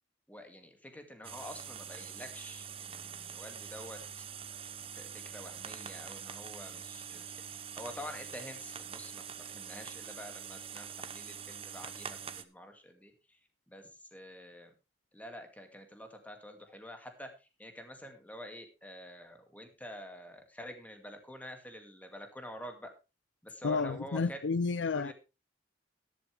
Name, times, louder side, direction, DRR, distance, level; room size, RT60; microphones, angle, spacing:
voice 1, 0.3-4.2 4.9-13.4 13.7-14.7 15.1-22.9 23.4-24.4 24.9-25.1, left 1 dB, 10° left, 5 dB, 2.2 m, -48 dB
sound 1, 1.2-12.4, right 7 dB, 30° right, 0.8 m, -44 dB
voice 2, 23.6-25.1, left 4 dB, 85° left, 18 dB, 0.5 m, -31 dB
13.0 x 11.5 x 3.4 m, 0.28 s
head